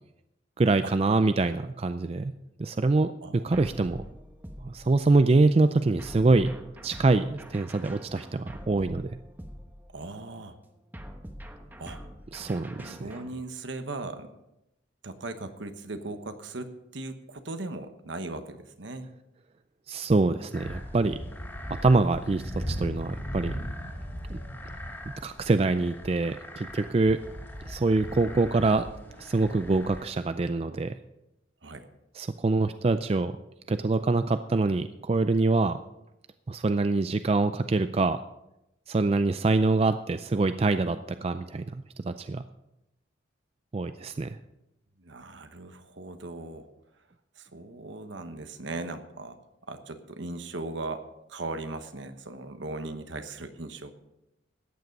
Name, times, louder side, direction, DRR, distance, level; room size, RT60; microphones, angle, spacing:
voice 1, 0.6-2.3 2.6-3.1 3.4-4.0 4.6-6.5 6.8-9.1 12.3-13.0 19.9-21.2 21.8-23.6 24.3-24.4 25.2-27.2 27.7-28.9 29.2-30.9 32.2-33.3 33.7-35.8 36.5-38.2 38.9-42.4 43.7-44.4, right 3 dB, 30° right, 10 dB, 0.3 m, -25 dB
sound 1, 3.5-5.2 6.0-10.2 10.9-13.4, equal, 10° right, 1.1 m, -44 dB
voice 2, 9.9-10.6 11.8-12.0 12.8-14.3 15.0-19.1 31.6-31.9 45.0-46.7 47.4-49.4 49.7-51.0 51.3-53.9, right 2 dB, 75° right, 9 dB, 1.1 m, -38 dB
sound 2, 20.5-30.0, equal, 10° left, 2.6 m, -38 dB
14.0 x 9.5 x 5.3 m, 0.89 s
head